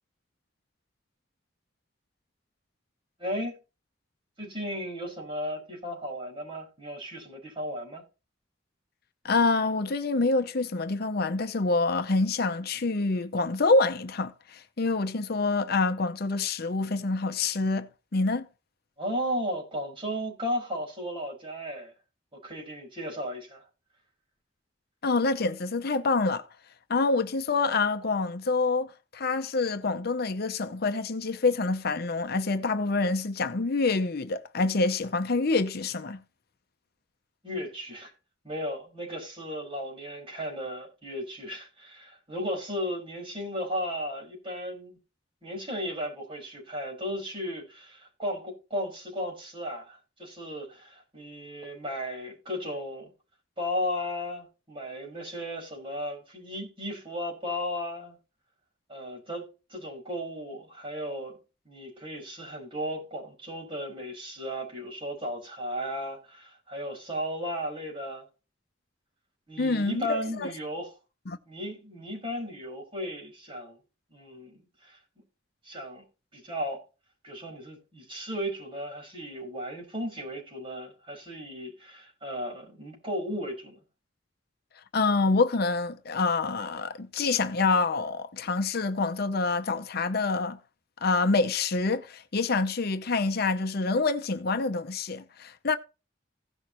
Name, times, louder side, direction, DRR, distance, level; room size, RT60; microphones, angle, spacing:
voice 1, 3.2-3.5 4.4-8.0 19.0-21.9 22.3-23.6 37.4-38.1 38.4-45.0 45.4-53.1 53.6-58.2 58.9-61.4 61.7-68.3 69.5-70.9 71.5-73.8 74.1-75.0 75.6-76.0 76.3-76.8 77.2-83.8, equal, 30° right, 5.6 m, -35 dB
voice 2, 9.2-18.5 25.0-26.4 26.9-36.2 69.6-70.5 71.3-71.4 84.9-90.6 91.0-95.8, left 3 dB, 55° left, 0.7 m, -26 dB
16.5 x 6.4 x 3.0 m
head